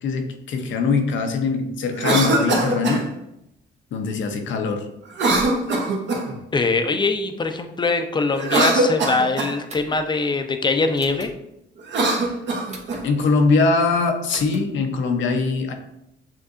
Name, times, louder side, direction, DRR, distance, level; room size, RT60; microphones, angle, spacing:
voice 1, 0.0-3.1 3.9-4.9 12.1-12.3 13.0-15.7, left 4 dB, 75° left, 4 dB, 0.8 m, -22 dB
Cough, 1.9-3.0 5.1-6.4 8.3-9.5 11.8-13.0, right 2 dB, 65° right, 1.1 m, -22 dB
voice 2, 6.5-11.3, left 3 dB, 25° left, 7 dB, 0.5 m, -22 dB
sound 1, 9.7-10.0 11.0-11.3 12.7-13.0 14.3-14.6, right 3 dB, 35° right, 0.9 m, -39 dB
7.3 x 2.6 x 2.5 m, 0.81 s
cardioid pair, 90°, 20 cm